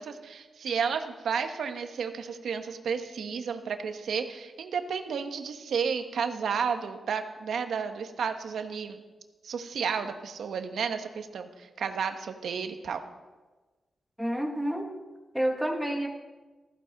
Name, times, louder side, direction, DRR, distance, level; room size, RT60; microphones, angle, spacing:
voice 1, 0.0-9.0 9.4-13.0, right 6 dB, 85° right, 7 dB, 1.1 m, -32 dB
voice 2, 14.2-14.9 15.3-16.1, right 1 dB, ahead, 3 dB, 1.4 m, -29 dB
14.5 x 14.5 x 4.0 m, 1.2 s
wide cardioid pair, 105°, 0 cm